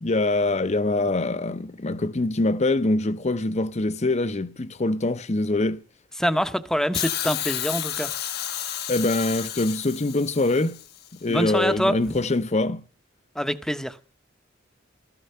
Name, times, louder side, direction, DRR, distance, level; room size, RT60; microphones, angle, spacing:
voice 1, 0.0-5.8 8.9-10.8 11.2-12.8, left 2 dB, 35° left, 0.8 m, -24 dB
voice 2, 6.2-8.1 11.3-12.2 13.3-14.0, equal, 5° left, 0.9 m, -25 dB
Hiss, 6.9-11.1 12.1-12.2, left 11 dB, 55° left, 1.0 m, -31 dB
15.0 x 14.0 x 5.6 m
head